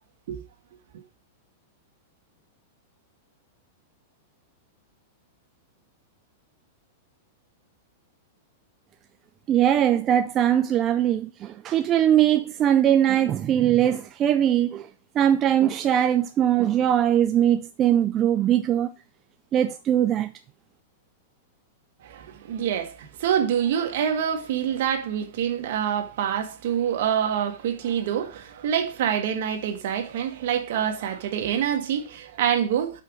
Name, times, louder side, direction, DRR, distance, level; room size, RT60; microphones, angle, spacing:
voice 1, 9.5-14.9 15.2-18.9 19.5-20.3, right 10 dB, 25° right, 0.4 m, -21 dB
voice 2, 22.0-33.0, right 9 dB, 60° right, 1.6 m, -26 dB
5.6 x 5.1 x 6.2 m
supercardioid pair, 160°, 0 cm